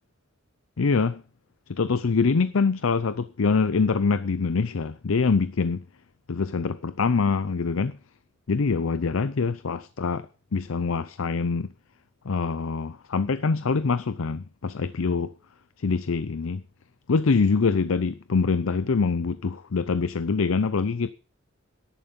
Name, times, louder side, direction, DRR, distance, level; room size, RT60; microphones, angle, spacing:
voice 1, 0.8-1.2 1.7-5.8 6.3-8.0 8.5-11.7 12.2-15.3 15.8-16.6 17.1-21.1, left 4 dB, 85° left, 0.6 m, -24 dB
13.0 x 11.0 x 5.3 m
head